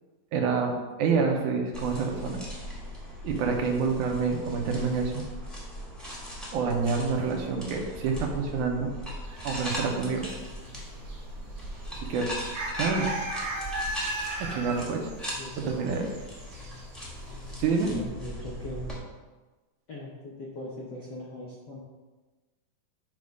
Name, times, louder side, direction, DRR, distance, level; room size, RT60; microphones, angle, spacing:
voice 1, 0.3-2.4 3.2-5.2 6.5-8.9 9.4-10.3 11.9-12.3 12.8-13.1 14.4-15.1 15.6-16.1 17.6-17.9, right 5 dB, 80° right, 2 dB, 2.4 m, -27 dB
sound 1, 1.7-19.0, equal, ahead, 0.8 m, -39 dB
sound 2, 9.2-9.9 10.2-10.3 10.7-11.2 11.5-11.7 12.4-16.9 17.2-17.3 17.7-17.9, right 2 dB, 45° right, 1.6 m, -36 dB
voice 2, 15.3-15.9 17.9-18.9 19.9-21.8, left 1 dB, 75° left, -4 dB, 0.9 m, -40 dB
8.9 x 3.6 x 5.3 m, 1.2 s
omnidirectional pair, 3.5 m